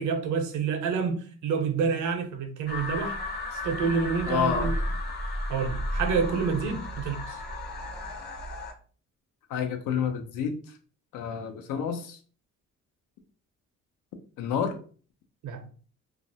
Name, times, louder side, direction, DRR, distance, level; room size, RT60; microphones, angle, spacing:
voice 1, 0.0-3.2 3.5-4.7 5.2-7.4 15.4-15.6, right 5 dB, 75° right, 6 dB, 0.6 m, -28 dB
sound 1, 2.7-8.7, left 1 dB, 35° left, 0.6 m, -33 dB
voice 2, 4.3-4.7 9.5-10.6 11.1-12.2 14.4-14.8, left 7 dB, 90° left, 6 dB, 0.5 m, -29 dB
2.4 x 2.0 x 2.6 m, 0.42 s
cardioid pair, 90°, 30 cm